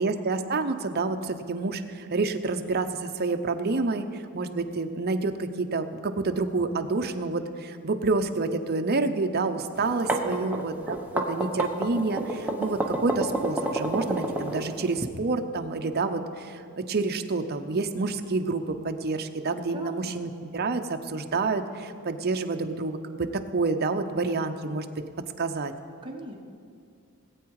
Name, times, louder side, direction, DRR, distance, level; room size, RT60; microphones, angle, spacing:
voice 1, 0.0-4.1 4.3-16.6 16.9-25.0 25.4-25.7, right 3 dB, 45° right, 6 dB, 0.7 m, -28 dB
sound 1, 9.8-15.0, right 2 dB, 5° right, 1.0 m, -29 dB
voice 2, 10.2-10.8 19.7-20.2 26.0-26.3, right 1 dB, 20° right, 0 dB, 1.3 m, -40 dB
18.5 x 8.6 x 4.8 m, 2.3 s
head